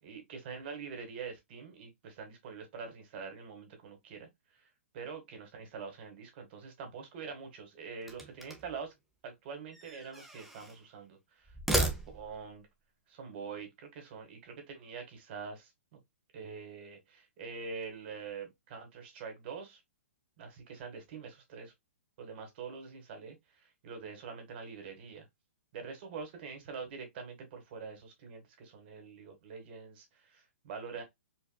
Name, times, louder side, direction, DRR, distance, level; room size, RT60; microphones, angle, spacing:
voice 1, 0.0-4.3 4.5-4.7 4.9-8.9 9.2-12.7 13.1-16.0 16.3-19.8 20.4-21.7 22.2-25.3 25.7-31.0, right 5 dB, 50° right, 1.7 m, -45 dB
sound 1, 8.0-8.8 9.7-10.8 11.5-12.5, right 1 dB, ahead, 0.8 m, -35 dB
4.6 x 2.5 x 2.2 m
hypercardioid pair, 130°, 7 cm